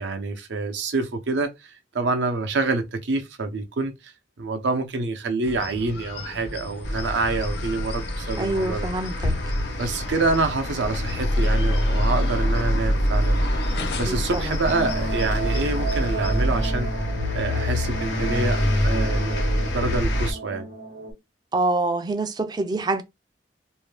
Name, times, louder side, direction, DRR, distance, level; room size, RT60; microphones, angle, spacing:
voice 1, 0.0-4.1 4.4-8.9 9.8-16.9 17.3-20.7, right 3 dB, 85° right, 0.6 m, -27 dB
sound 1, 5.4-16.7, left 1 dB, 65° left, 0.5 m, -36 dB
sound 2, 6.8-20.3, left 1 dB, 85° left, 0.9 m, -25 dB
voice 2, 8.4-9.4 13.7-14.6 21.5-23.0, right 2 dB, 25° right, 0.3 m, -26 dB
sound 3, 14.6-21.1, right 2 dB, 55° right, 0.9 m, -32 dB
2.7 x 2.2 x 3.2 m
head